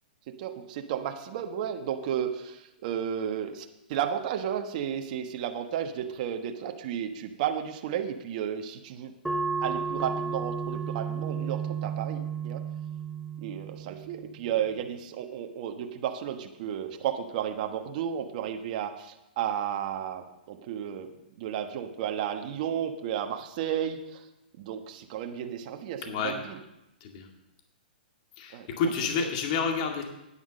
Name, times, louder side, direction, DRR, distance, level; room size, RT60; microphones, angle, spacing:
voice 1, 0.3-9.1 9.6-12.6 13.4-21.1 21.4-24.3 24.6-26.6 28.5-28.7, right 9 dB, 50° right, 6 dB, 1.3 m, -33 dB
sound 1, 9.3-14.4, right 5 dB, 5° right, 0.7 m, -33 dB
voice 2, 26.0-26.3 27.0-27.3 28.4-30.0, left 5 dB, 45° left, 3 dB, 2.1 m, -29 dB
10.0 x 9.5 x 6.6 m, 0.91 s
hypercardioid pair, 135°, 5 cm